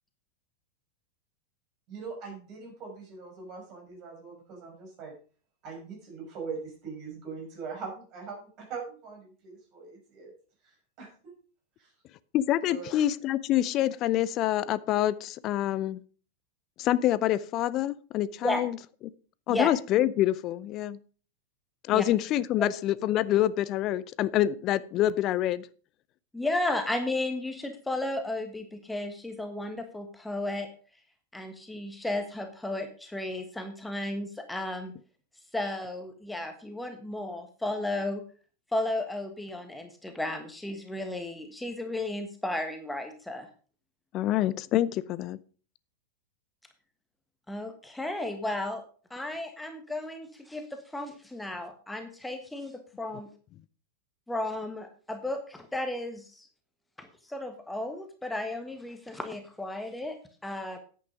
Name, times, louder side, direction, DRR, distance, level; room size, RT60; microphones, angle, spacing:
voice 1, 1.9-5.1 5.6-10.3 11.0-11.3 11.8-11.9 12.7-12.9, right 5 dB, 40° right, 0 dB, 6.2 m, -41 dB
voice 2, 12.3-16.0 16.8-18.8 19.5-21.0 21.9-25.7 44.1-45.4, left 13 dB, 35° left, 19 dB, 0.6 m, -26 dB
voice 3, 26.3-30.7 31.3-34.9 35.5-38.2 38.7-43.5 47.5-48.8 49.1-53.3 54.3-56.5 57.0-60.2 60.4-60.8, left 1 dB, 5° left, 6 dB, 1.4 m, -34 dB
10.0 x 8.5 x 5.0 m, 0.40 s
figure-of-eight pair, 90°, 0 cm